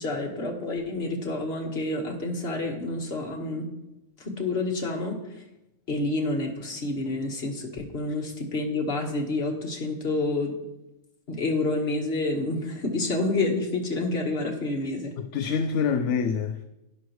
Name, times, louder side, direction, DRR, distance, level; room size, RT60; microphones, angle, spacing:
voice 1, 0.0-3.7 4.2-5.2 5.9-10.6 11.3-15.2, left 2 dB, 55° left, 1.8 m, -28 dB
voice 2, 15.2-16.6, left 6 dB, 70° left, 0.9 m, -26 dB
12.0 x 10.5 x 3.1 m
omnidirectional pair, 1.3 m